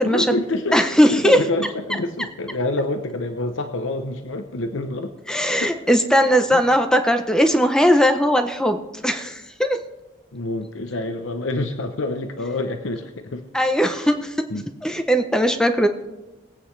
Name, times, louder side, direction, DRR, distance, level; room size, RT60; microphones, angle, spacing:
voice 1, 0.0-0.8 1.1-5.1 5.5-5.7 6.5-6.7 10.3-13.4 13.9-14.1 14.5-14.7, left 2 dB, 90° left, 6 dB, 0.9 m, -27 dB
voice 2, 0.7-1.4 5.3-9.8 13.5-14.3 14.8-15.9, equal, 5° left, 7 dB, 0.6 m, -18 dB
21.5 x 8.6 x 3.3 m, 1.1 s
head